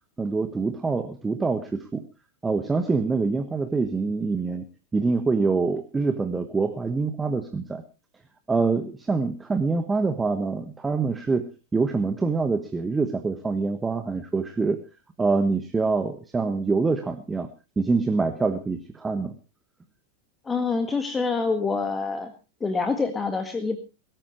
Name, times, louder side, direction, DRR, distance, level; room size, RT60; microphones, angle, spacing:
voice 1, 0.2-2.0 2.4-4.6 4.9-7.8 8.5-14.8 15.2-17.5 17.8-19.3, right 4 dB, 15° right, 8 dB, 1.3 m, -25 dB
voice 2, 20.4-22.3 22.6-23.8, left 4 dB, 15° left, 8 dB, 1.7 m, -26 dB
22.5 x 13.5 x 3.1 m, 0.31 s
figure-of-eight pair, 90°, 0 cm